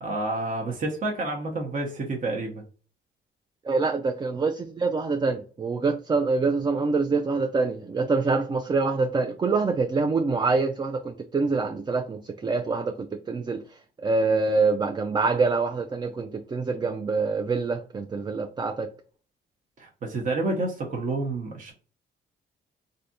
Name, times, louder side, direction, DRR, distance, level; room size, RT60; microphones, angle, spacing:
voice 1, 0.0-2.6 19.8-21.7, right 2 dB, 40° right, 0.8 m, -29 dB
voice 2, 3.7-13.6 14.0-18.9, right 4 dB, 20° right, 0.3 m, -25 dB
3.3 x 2.6 x 2.7 m
cardioid pair, 90°, 20 cm